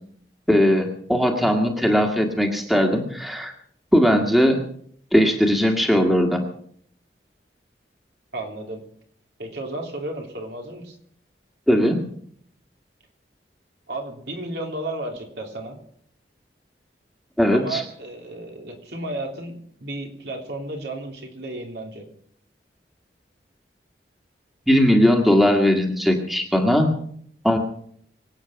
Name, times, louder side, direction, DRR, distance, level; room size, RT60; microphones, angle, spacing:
voice 1, 0.5-3.5 3.9-4.6 5.1-6.4 11.7-12.1 17.4-17.8 24.7-26.9 27.4-27.6, equal, ahead, 2 dB, 1.8 m, -19 dB
voice 2, 8.3-8.8 9.4-11.0 13.9-15.8 17.5-22.0, right 2 dB, 70° right, 2 dB, 3.3 m, -33 dB
24.5 x 8.9 x 5.8 m, 0.64 s
head